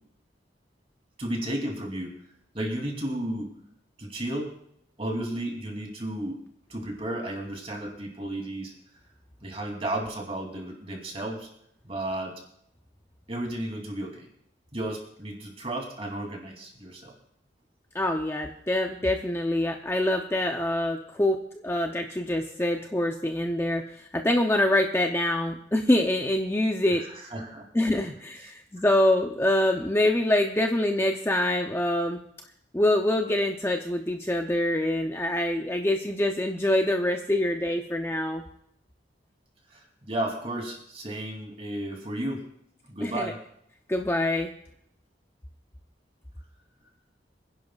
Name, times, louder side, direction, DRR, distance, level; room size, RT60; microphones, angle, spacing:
voice 1, 1.2-2.1 2.5-3.5 4.0-4.5 5.0-6.4 6.7-8.7 9.4-11.5 11.8-12.3 13.3-14.3 14.7-17.1 26.9-27.6 39.7-42.5 42.9-43.4, right 1 dB, 30° right, 1 dB, 2.9 m, -33 dB
voice 2, 17.9-27.0 27.7-32.2 32.7-38.4 43.0-43.3 43.9-44.5, left 1 dB, 15° left, 3 dB, 0.6 m, -25 dB
26.0 x 10.5 x 2.4 m, 0.72 s
head